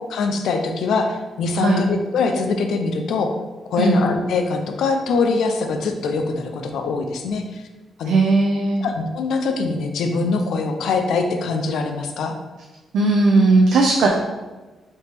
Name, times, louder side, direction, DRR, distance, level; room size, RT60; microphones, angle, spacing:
voice 1, 0.1-3.3 3.7-7.7 8.0-8.2 8.8-12.3, left 4 dB, 75° left, 5 dB, 0.5 m, -23 dB
voice 2, 1.6-1.9 3.8-4.0 8.1-8.8 12.9-14.1, right 3 dB, 70° right, 0 dB, 0.4 m, -17 dB
3.4 x 3.0 x 4.4 m, 1.2 s
cardioid pair, 150°, 0 cm